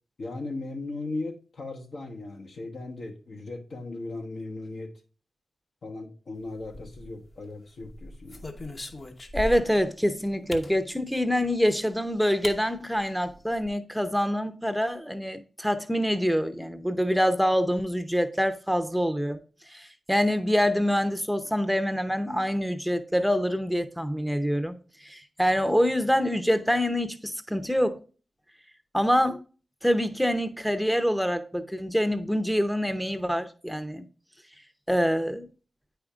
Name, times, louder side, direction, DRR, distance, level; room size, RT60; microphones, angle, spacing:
voice 1, 0.2-4.9 5.8-8.5, left 2 dB, 70° left, 1.2 m, -37 dB
sound 1, 6.6-7.3 7.8-9.8 10.5-10.8 11.9-12.0 12.4-12.6 12.9-13.0 13.3-13.7, left 1 dB, 45° left, 1.0 m, -38 dB
voice 2, 9.3-19.4 19.7-24.8 25.0-28.0 28.9-29.4 29.8-34.0 34.9-35.5, equal, ahead, 0.7 m, -25 dB
8.9 x 5.0 x 2.4 m
cardioid pair, 45°, 0 cm